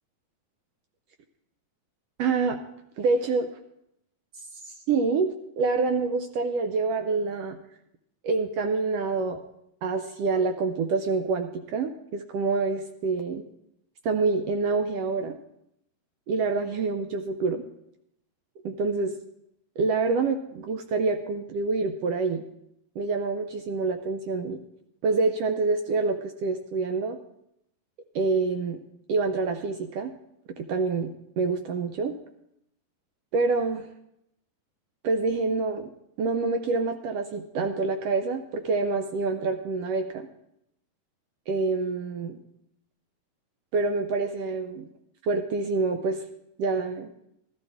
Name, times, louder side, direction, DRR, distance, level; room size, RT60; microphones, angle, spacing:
voice 1, 2.2-2.6 3.0-3.5 4.9-7.6 8.2-9.4 9.8-13.4 14.0-15.3 16.3-17.6 18.6-19.2 19.8-22.4 23.0-24.6 25.0-27.2 28.1-28.8 29.1-30.1 30.7-32.1 33.3-33.9 35.0-35.9 36.2-40.3 41.5-42.4 43.7-44.9 45.2-46.2 46.6-47.1, right 4 dB, 80° right, 6 dB, 1.4 m, -26 dB
15.0 x 12.5 x 3.6 m, 0.79 s
omnidirectional pair, 3.5 m